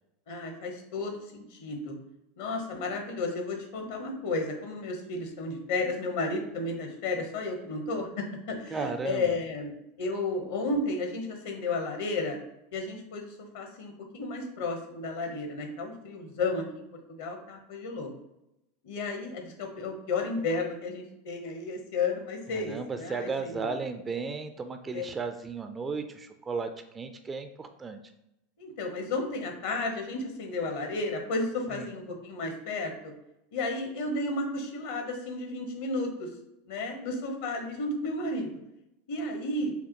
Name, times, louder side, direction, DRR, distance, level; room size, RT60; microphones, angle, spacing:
voice 1, 0.3-2.0 2.4-12.4 12.7-18.1 18.8-23.7 24.9-25.0 28.6-33.1 33.5-36.3 36.7-38.5 39.1-39.7, left 3 dB, 60° left, 3 dB, 0.9 m, -33 dB
voice 2, 8.7-9.3 22.5-28.0 31.7-31.9, right 4 dB, 20° right, 7 dB, 0.4 m, -35 dB
5.6 x 2.0 x 3.0 m, 0.87 s
figure-of-eight pair, 85°, 0 cm